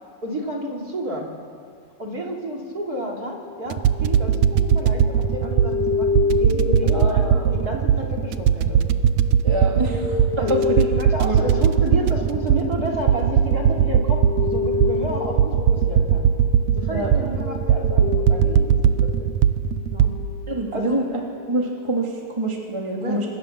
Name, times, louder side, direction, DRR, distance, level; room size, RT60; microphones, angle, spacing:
voice 1, 0.2-1.3 2.0-8.8 9.9-10.0 10.4-10.6 10.9-16.3 16.7-19.3 19.9-20.1 20.7-21.0 23.0-23.2, right 1 dB, 25° right, 0 dB, 3.5 m, -30 dB
sound 1, 3.3-19.6 20.0-20.8, left 5 dB, 55° left, 2.3 m, -30 dB
sound 2, 3.7-20.1, right 9 dB, 75° right, 1.9 m, -19 dB
voice 2, 6.9-7.5 9.4-10.2 10.5-10.9 11.2-11.4 16.9-17.2 20.5-21.2 21.5-23.3, right 2 dB, 10° right, -1 dB, 2.4 m, -26 dB
29.5 x 26.5 x 7.0 m, 2.2 s
omnidirectional pair, 4.2 m